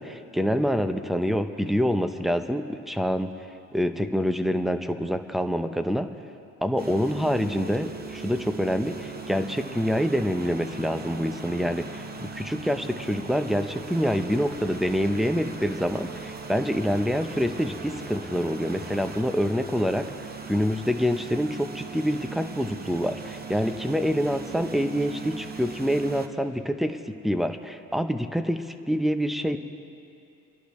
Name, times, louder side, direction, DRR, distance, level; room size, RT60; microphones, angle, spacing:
voice 1, 0.0-3.3 3.7-6.1 6.6-12.0 12.3-20.1 20.5-27.0 27.2-29.6, equal, ahead, 8 dB, 0.8 m, -26 dB
sound 1, 6.8-26.3, right 4 dB, 30° right, 1.1 m, -39 dB
30.0 x 11.5 x 3.2 m, 2.7 s
cardioid pair, 90°, 30 cm